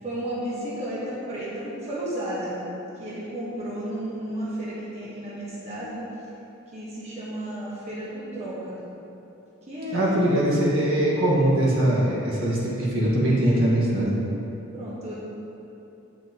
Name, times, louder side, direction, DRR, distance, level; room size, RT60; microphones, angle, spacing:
voice 1, 0.0-2.6 3.0-6.0 6.7-8.8 9.7-10.0 14.7-15.2, right 1 dB, 30° right, -8 dB, 1.4 m, -33 dB
voice 2, 9.9-14.2, right 1 dB, 65° right, -6 dB, 1.7 m, -22 dB
9.8 x 6.2 x 3.0 m, 3.0 s
head